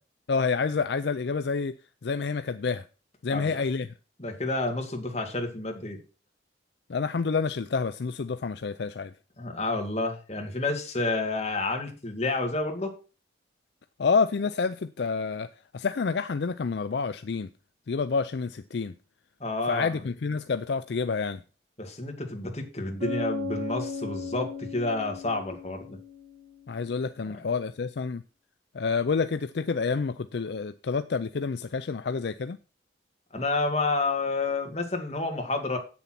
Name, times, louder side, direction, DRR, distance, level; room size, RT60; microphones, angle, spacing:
voice 1, 0.3-1.7 2.0-2.8 3.2-3.9 6.9-9.1 14.0-15.5 15.7-17.5 17.9-18.9 19.7-21.4 26.7-28.2 28.7-32.6, left 5 dB, 65° left, 0.4 m, -28 dB
voice 2, 3.3-3.7 4.2-6.0 9.4-12.9 19.4-20.0 21.8-26.0 33.3-35.8, left 2 dB, 35° left, 2.1 m, -30 dB
Bass guitar, 23.0-26.6, left 3 dB, 55° right, 5.3 m, -36 dB
8.3 x 7.0 x 5.9 m
head